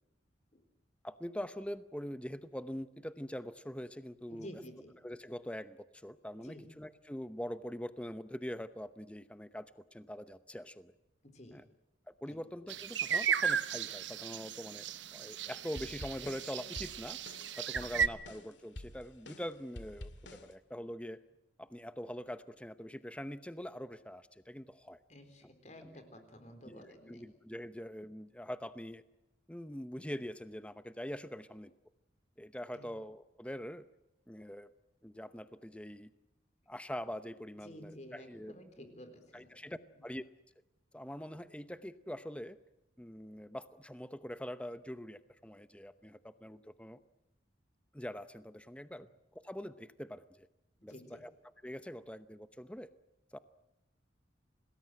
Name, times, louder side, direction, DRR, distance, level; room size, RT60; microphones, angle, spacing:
voice 1, 1.0-4.5 5.0-10.9 11.5-11.6 12.1-14.8 15.1-17.2 17.6-21.2 21.6-25.0 25.4-25.5 25.8-26.0 26.7-29.0 29.5-31.7 32.4-33.9 34.3-34.7 35.0-36.1 36.7-38.9 39.3-40.2 40.9-42.6 43.0-47.0 47.9-49.1 49.3-50.5 50.8-51.3 51.6-52.9 53.3-53.4, equal, 5° left, 12 dB, 0.8 m, -44 dB
voice 2, 4.3-4.9 6.4-6.7 11.2-11.6 12.3-12.4 25.1-27.3 32.7-32.9 37.6-39.5 40.0-40.1 50.9-51.2, equal, 40° left, 8 dB, 4.0 m, -52 dB
sound 1, 12.7-18.1, right 7 dB, 75° right, 1.1 m, -35 dB
sound 2, 15.4-20.5, left 1 dB, 75° left, 2.2 m, -49 dB
27.0 x 19.5 x 7.8 m, 0.95 s
head